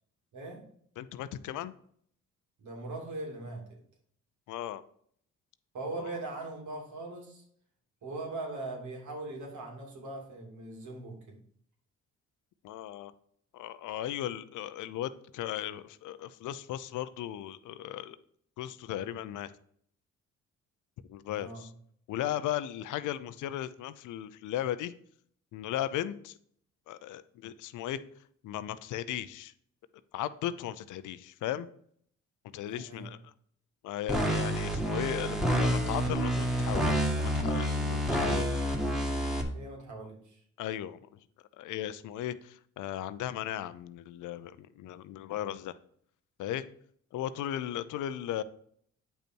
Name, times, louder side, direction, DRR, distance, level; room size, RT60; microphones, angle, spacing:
voice 1, 0.3-0.6 2.6-3.6 5.7-7.4 8.0-11.4 21.3-21.6 32.7-33.1 39.5-40.4, right 2 dB, 75° right, 0 dB, 2.8 m, -40 dB
voice 2, 1.0-1.7 4.5-4.8 6.0-6.1 12.6-13.1 13.5-18.2 18.6-19.5 21.1-21.7 22.1-24.9 25.5-26.3 26.9-28.0 28.4-29.5 30.1-31.7 32.4-33.3 33.8-38.6 40.6-41.0 41.6-45.7 46.4-46.7 47.1-48.4, left 12 dB, 80° left, 14 dB, 0.6 m, -36 dB
sound 1, 34.1-39.4, equal, ahead, 1.5 m, -28 dB
8.8 x 5.5 x 4.5 m, 0.64 s
cardioid pair, 90°, 30 cm